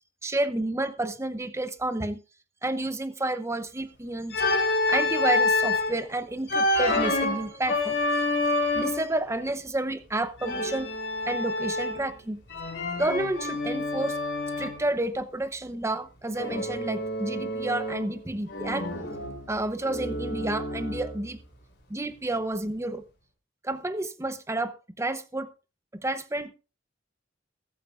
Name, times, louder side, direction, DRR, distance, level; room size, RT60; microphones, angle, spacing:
voice 1, 0.2-2.2 2.6-4.4 4.9-8.3 8.7-10.9 11.3-12.4 13.0-14.2 14.6-18.9 19.5-21.4 21.9-23.0 23.6-25.5 25.9-26.5, right 2 dB, 15° right, 11 dB, 0.8 m, -30 dB
Organ, 4.3-5.9 6.5-9.1 10.4-12.1 12.5-14.8 16.4-18.2 18.5-21.2, left 2 dB, 65° left, 4.7 m, -28 dB
21.5 x 8.4 x 2.5 m, 0.32 s
head